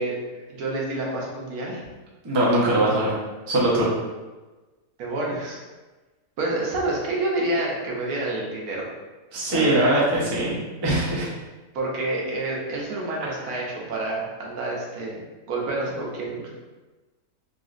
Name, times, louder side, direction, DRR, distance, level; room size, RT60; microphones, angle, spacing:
voice 1, 0.0-1.9 5.0-5.6 6.4-8.8 9.5-9.9 11.7-16.5, right 2 dB, 80° right, -3 dB, 1.2 m, -28 dB
voice 2, 2.2-3.1 3.5-3.9 9.3-11.3 13.2-13.3, right 1 dB, 30° right, -6 dB, 0.5 m, -21 dB
3.9 x 2.4 x 2.4 m, 1.2 s
omnidirectional pair, 1.6 m